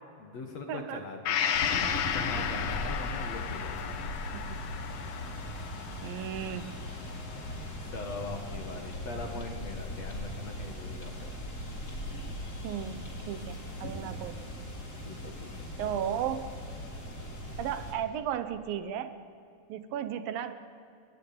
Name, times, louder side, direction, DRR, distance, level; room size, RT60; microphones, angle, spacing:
voice 1, 0.2-4.2 7.8-11.1 15.0-15.7, left 3 dB, 50° left, 2 dB, 2.8 m, -41 dB
voice 2, 0.7-1.0 1.5-1.6 4.3-4.6 6.0-6.8 12.6-14.4 15.8-16.5 17.6-19.1 19.7-20.5, right 9 dB, 85° right, 11 dB, 2.8 m, -35 dB
Gong, 1.3-8.9 9.3-9.4, left 9 dB, 70° left, 2.5 m, -35 dB
sound 1, 1.5-17.9, left 1 dB, 25° left, 3.7 m, -39 dB
29.5 x 20.5 x 8.8 m, 2.4 s
omnidirectional pair, 4.0 m